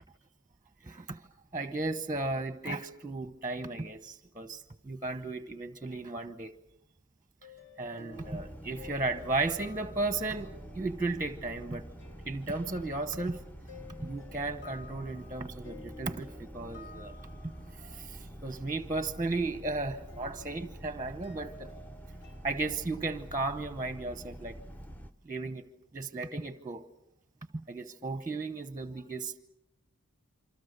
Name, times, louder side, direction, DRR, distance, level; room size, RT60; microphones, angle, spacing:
voice 1, 0.8-1.2 1.5-6.5 7.8-11.9 12.2-13.4 14.0-17.2 17.4-17.5 17.9-21.7 22.4-24.6 25.2-25.6 25.9-26.9 27.5-29.3, right 2 dB, 15° right, 0.9 m, -35 dB
sound 1, 7.4-13.3 13.7-22.9, left 2 dB, 55° left, 4.3 m, -53 dB
sound 2, 8.1-25.1, right 1 dB, 10° left, 1.0 m, -47 dB
27.5 x 25.5 x 6.7 m
head